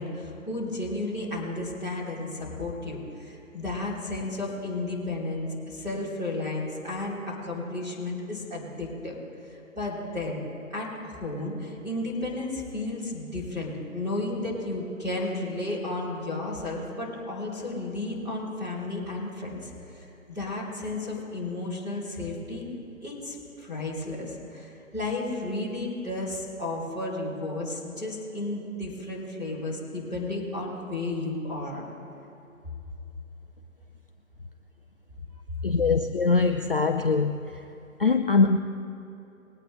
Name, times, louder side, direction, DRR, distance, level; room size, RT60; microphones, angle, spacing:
voice 1, 0.0-9.2 9.4-10.4 10.7-22.6 23.0-31.8, left 2 dB, 10° right, -9 dB, 3.4 m, -33 dB
voice 2, 35.6-37.5 38.0-38.6, left 4 dB, 40° left, 6 dB, 0.5 m, -22 dB
21.5 x 9.3 x 3.8 m, 2.9 s
figure-of-eight pair, 145°, 43 cm